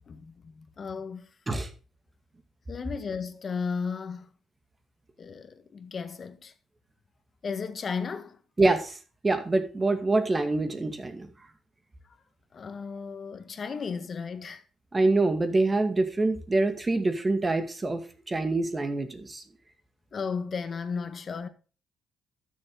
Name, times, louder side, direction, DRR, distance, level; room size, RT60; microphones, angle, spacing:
voice 1, 0.1-1.3 2.7-4.3 5.2-6.5 7.4-8.4 12.5-14.6 20.1-21.5, left 5 dB, 45° left, 1.5 m, -34 dB
voice 2, 8.6-9.0 9.2-11.3 14.9-18.0 18.3-19.4, right 2 dB, 25° right, 2.1 m, -25 dB
12.5 x 7.4 x 3.8 m
cardioid pair, 90°, 0 cm